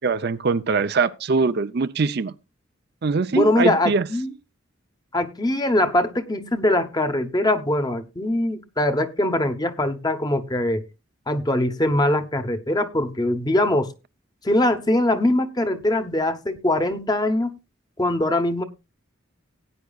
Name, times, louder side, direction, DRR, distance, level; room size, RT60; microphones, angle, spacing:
voice 1, 0.0-2.3 3.0-4.1, right 4 dB, 50° right, 0.5 m, -22 dB
voice 2, 3.3-4.3 5.1-10.8 11.3-13.9 14.4-17.6 18.0-18.6, left 1 dB, 20° left, 0.9 m, -22 dB
18.0 x 9.4 x 2.3 m
head